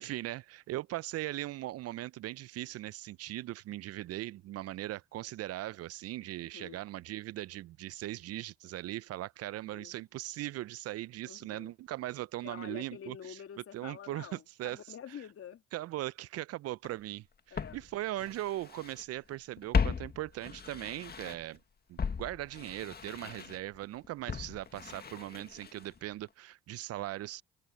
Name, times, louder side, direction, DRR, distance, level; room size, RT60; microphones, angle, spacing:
voice 1, 0.0-13.4 13.7-14.8 15.7-21.6 21.9-27.4, right 15 dB, 55° right, 0.7 m, -39 dB
voice 2, 6.4-6.8 9.6-9.9 11.3-11.7 12.4-15.6 17.5-17.8, left 9 dB, 50° left, 3.2 m, -47 dB
Walk footsteps, 16.8-16.9 17.6-19.0 19.3-21.6 22.0-26.0 26.3-26.4, left 6 dB, 35° left, 2.0 m, -36 dB
hypercardioid pair, 60°, 29 cm